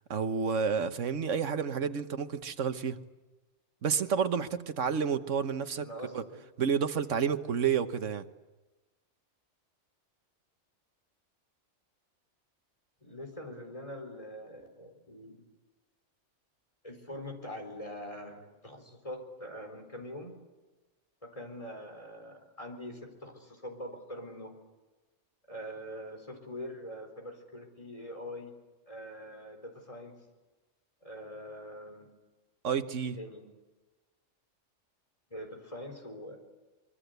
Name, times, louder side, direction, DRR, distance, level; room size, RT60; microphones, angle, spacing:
voice 1, 0.1-3.0 3.8-5.9 6.1-6.2 6.6-8.2 32.6-33.2, right 6 dB, 85° right, 10 dB, 1.5 m, -30 dB
voice 2, 5.8-6.4 13.0-15.4 16.8-20.3 21.3-24.5 25.5-28.5 28.9-30.1 31.0-32.1 33.2-33.4 35.3-36.4, equal, 25° left, 4 dB, 4.5 m, -43 dB
25.5 x 22.5 x 8.1 m, 1.1 s
omnidirectional pair, 1.2 m